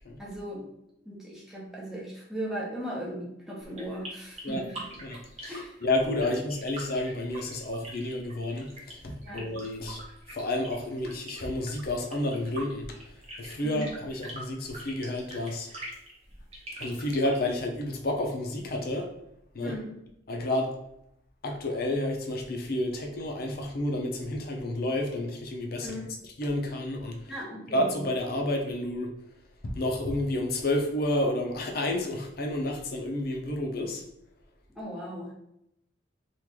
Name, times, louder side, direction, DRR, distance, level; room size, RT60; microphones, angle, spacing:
voice 1, 0.2-0.7 1.0-5.0 5.5-5.8 6.3-6.4 9.2-9.5 13.6-13.9 19.6-20.0 25.8-26.1 27.3-27.9 34.7-35.3, equal, ahead, -5 dB, 0.8 m, -38 dB
sound 1, 3.6-17.6, right 1 dB, 35° right, 0.9 m, -44 dB
voice 2, 5.0-12.9 13.4-15.7 16.8-19.1 19.5-19.7 20.3-20.7 21.4-25.9 26.4-27.3 27.7-29.1 29.6-34.0, left 1 dB, 55° left, 2 dB, 0.6 m, -30 dB
3.0 x 2.5 x 3.6 m, 0.79 s
head